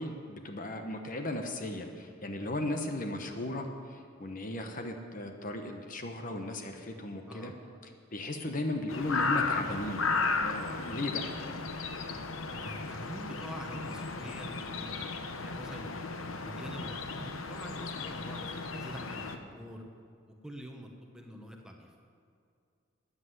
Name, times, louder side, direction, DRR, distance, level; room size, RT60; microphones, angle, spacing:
voice 1, 0.0-7.5 8.1-10.0 10.4-11.3, left 1 dB, 40° left, 5 dB, 1.1 m, -36 dB
sound 1, 8.9-19.4, left 4 dB, 90° left, 1.0 m, -35 dB
voice 2, 12.5-15.1 15.4-19.8 20.4-22.0, equal, 5° right, 2 dB, 1.2 m, -45 dB
14.0 x 9.9 x 8.0 m, 2.4 s
head